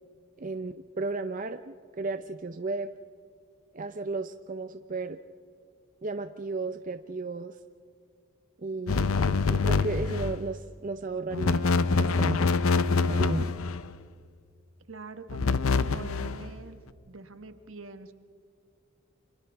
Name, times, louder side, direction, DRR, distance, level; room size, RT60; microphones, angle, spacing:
voice 1, 0.4-2.9 3.7-5.2 6.0-7.6 8.6-9.2 9.5-11.7 12.0-12.5 13.1-13.5, right 3 dB, 40° right, 8 dB, 0.5 m, -34 dB
sound 1, 8.9-10.4 11.3-13.9 15.3-16.5, left 4 dB, 85° left, 0.6 m, -25 dB
voice 2, 14.9-16.8 17.0-18.1, right 3 dB, 70° right, 9 dB, 1.3 m, -45 dB
29.5 x 26.0 x 3.5 m, 2.3 s
head